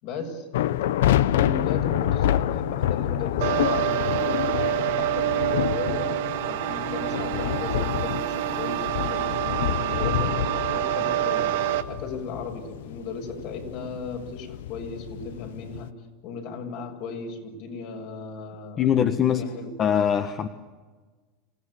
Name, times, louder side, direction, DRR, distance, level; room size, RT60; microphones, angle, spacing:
voice 1, 0.0-0.5 1.3-10.4 10.7-11.6 11.9-16.0 16.2-18.9 19.3-19.7, left 4 dB, 65° left, 2 dB, 6.9 m, -36 dB
sound 1, 0.5-15.9, left 12 dB, 85° left, 0.7 m, -28 dB
sound 2, 3.4-11.8, right 13 dB, 80° right, 1.8 m, -27 dB
voice 2, 18.8-19.4 19.8-20.5, left 9 dB, 35° left, 8 dB, 1.3 m, -22 dB
27.0 x 16.0 x 10.0 m, 1.3 s
supercardioid pair, 115°, 0 cm